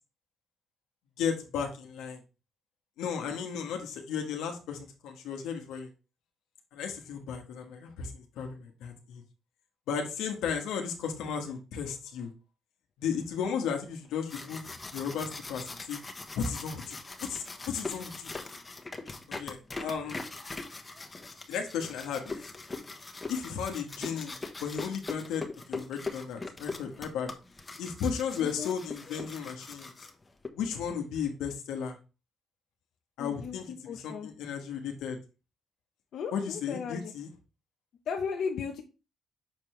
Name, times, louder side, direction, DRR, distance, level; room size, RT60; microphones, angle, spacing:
voice 1, 1.2-2.2 3.0-5.9 6.7-9.2 9.9-12.3 13.0-16.0 16.3-18.3 19.3-20.2 21.5-22.4 23.3-24.4 24.6-27.3 27.8-29.9 30.5-32.0 33.2-35.2 36.3-37.3, left 7 dB, 90° left, 4 dB, 1.5 m, -35 dB
sound 1, 14.1-30.5, left 3 dB, 25° left, 1.3 m, -41 dB
voice 2, 28.4-28.7 33.2-34.3 36.1-37.1 38.1-38.8, left 6 dB, 70° left, 3 dB, 1.0 m, -36 dB
7.1 x 4.6 x 3.3 m, 0.31 s
cardioid pair, 90°, 0 cm